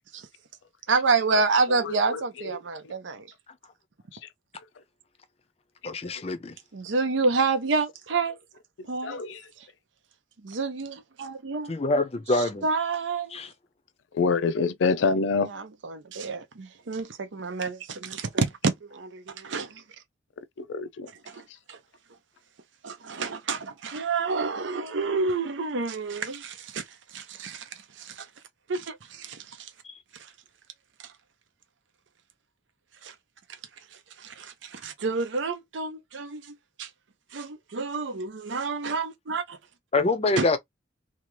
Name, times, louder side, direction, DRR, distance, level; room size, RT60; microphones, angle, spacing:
voice 1, 0.9-3.3 6.7-8.4 8.9-9.2 9.6-9.7 10.4-11.7 12.3-13.4 15.4-19.8 21.2-21.8 22.8-28.3 28.7-29.7 30.1-30.3 31.0-31.1 33.0-33.1 33.5-33.6 33.9-36.9 37.3-39.6 40.4-40.5, right 4 dB, 80° right, 0.6 m, -29 dB
voice 2, 5.8-6.5 11.7-12.7 13.3-13.5 29.8-29.9 39.9-40.6, left 2 dB, 35° left, 0.5 m, -25 dB
voice 3, 9.0-9.4 14.1-15.5 20.6-21.1, left 4 dB, 85° left, 0.4 m, -25 dB
2.8 x 2.4 x 3.0 m
head